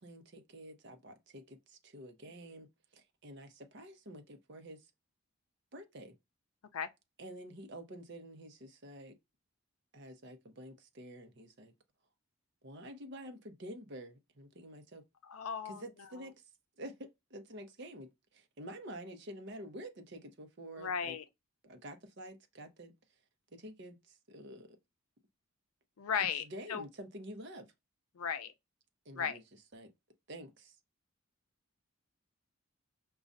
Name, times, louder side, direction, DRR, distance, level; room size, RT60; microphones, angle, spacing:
voice 1, 0.0-2.7 2.9-4.9 5.7-6.2 7.2-9.2 9.9-11.7 12.6-15.0 15.6-16.3 16.8-21.2 21.6-22.9 23.5-24.8 26.1-27.7 29.1-29.4 29.7-29.9 30.3-30.8, right 1 dB, 50° right, 0.7 m, -49 dB
voice 2, 15.2-16.1 20.8-21.2 26.0-26.8 28.1-28.5 29.1-29.4, left 7 dB, 90° left, 0.5 m, -36 dB
5.1 x 2.3 x 2.5 m
head